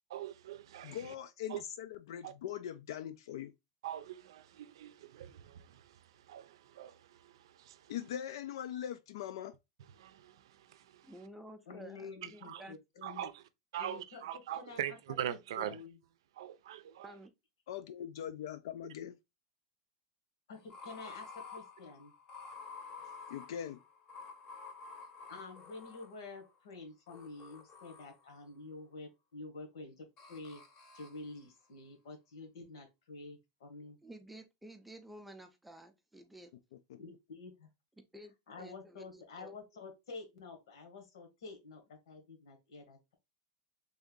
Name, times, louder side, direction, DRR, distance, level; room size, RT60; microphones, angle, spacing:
voice 1, 0.1-1.1 1.5-1.6 2.2-2.3 3.8-7.9 10.0-11.1 12.4-12.6 13.0-13.4 13.7-15.8 16.4-17.1, right 11 dB, 80° right, 0.5 m, -42 dB
voice 2, 0.8-3.5 7.9-9.5 17.7-19.2 23.3-23.8 36.9-37.0, left 10 dB, 75° left, 0.4 m, -41 dB
voice 3, 11.0-12.8 17.0-17.3 34.0-36.5 38.1-39.5, right 1 dB, 5° right, 0.4 m, -52 dB
voice 4, 11.7-13.3 13.8-14.2 14.5-15.0 15.3-16.0 20.5-22.1 25.3-30.6 30.9-34.0 37.0-37.7 38.5-43.1, left 3 dB, 90° left, 1.5 m, -49 dB
sound 1, 20.5-26.6 27.1-28.4 30.2-31.3, left 4 dB, 25° left, 0.7 m, -51 dB
3.5 x 2.6 x 3.7 m
supercardioid pair, 170°, 3 cm